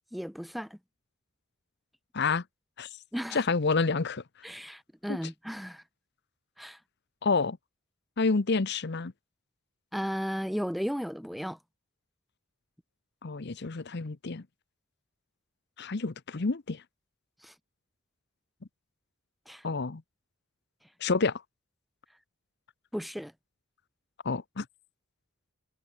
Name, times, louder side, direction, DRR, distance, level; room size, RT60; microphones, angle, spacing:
voice 1, 0.1-0.8 3.1-3.4 4.4-5.8 6.6-6.8 9.9-11.6 17.4-17.5 19.5-19.6 22.9-23.3, equal, ahead, 1.1 m, -35 dB
voice 2, 3.3-4.2 5.1-5.2 7.2-7.6 8.2-9.1 13.2-14.4 15.8-16.8 19.6-20.0 21.0-21.4 24.2-24.7, left 4 dB, 50° left, 0.8 m, -28 dB
head